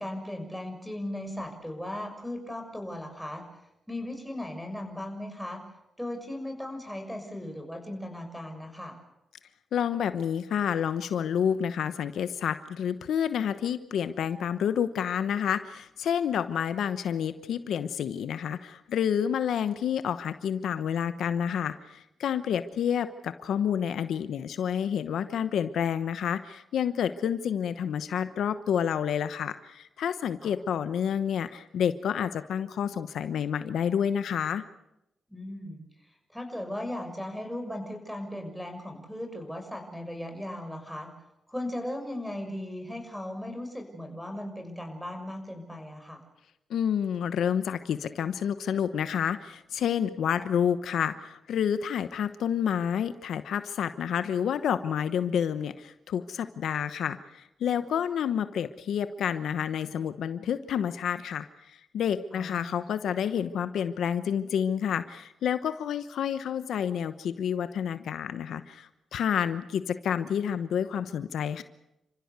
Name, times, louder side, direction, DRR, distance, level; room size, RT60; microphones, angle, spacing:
voice 1, 0.0-3.4 3.9-5.6 6.0-9.0 30.4-30.5 35.3-41.1 41.5-46.2 62.3-62.8, left 1 dB, ahead, 4 dB, 6.4 m, -37 dB
voice 2, 9.7-34.6 46.7-71.6, left 8 dB, 80° left, 11 dB, 1.0 m, -29 dB
29.5 x 15.5 x 8.2 m, 0.89 s
cardioid pair, 65°, 0 cm